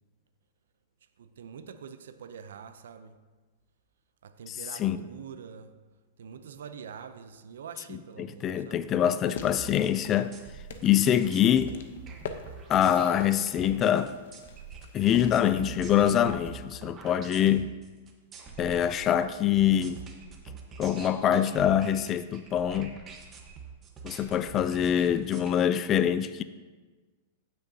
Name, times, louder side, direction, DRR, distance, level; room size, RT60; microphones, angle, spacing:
voice 1, 1.2-3.2 4.2-5.7 6.2-8.8, right 7 dB, 85° right, 0.6 m, -45 dB
voice 2, 4.5-5.0 7.9-10.4 10.8-11.7 12.7-14.2 14.9-17.7 18.6-20.0 20.8-23.0 24.0-26.4, left 10 dB, 30° left, 0.3 m, -25 dB
sound 1, 9.1-16.6, left 6 dB, 75° left, 0.9 m, -43 dB
sound 2, 9.6-25.5, right 6 dB, 25° right, 1.1 m, -45 dB
15.5 x 6.4 x 2.8 m
hypercardioid pair, 140°, 0 cm